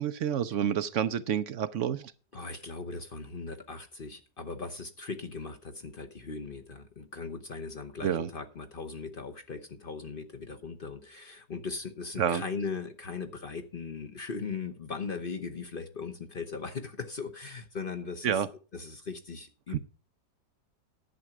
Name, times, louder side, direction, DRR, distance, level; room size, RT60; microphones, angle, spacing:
voice 1, 0.0-2.1 8.0-8.3 12.2-12.4 18.2-18.5 19.7-19.8, right 9 dB, 60° right, 14 dB, 0.8 m, -29 dB
voice 2, 2.3-18.4 18.7-19.8, left 4 dB, 40° left, 6 dB, 0.9 m, -39 dB
11.0 x 7.7 x 5.9 m, 0.35 s
omnidirectional pair, 1.8 m